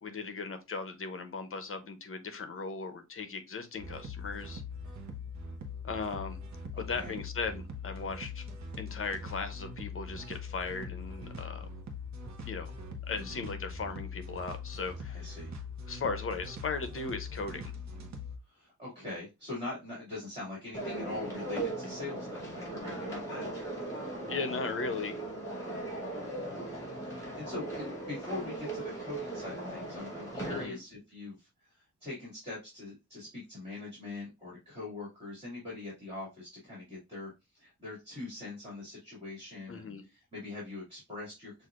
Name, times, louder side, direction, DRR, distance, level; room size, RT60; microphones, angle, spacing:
voice 1, 0.0-4.6 5.8-6.4 6.8-8.4 8.8-11.7 12.4-12.7 13.1-15.3 15.9-17.7 24.3-25.2 30.5-30.8 39.7-40.0, left 4 dB, 45° left, 0.7 m, -37 dB
sound 1, 3.8-18.4, left 3 dB, 65° right, 0.8 m, -42 dB
voice 2, 6.7-7.2 13.1-13.4 15.0-15.5 18.5-23.5 25.6-25.9 26.4-26.8 27.1-41.7, left 2 dB, 20° right, 2.3 m, -43 dB
sound 2, 20.7-30.6, right 2 dB, 10° left, 2.1 m, -38 dB
6.3 x 2.5 x 2.4 m
wide cardioid pair, 150°, 30 cm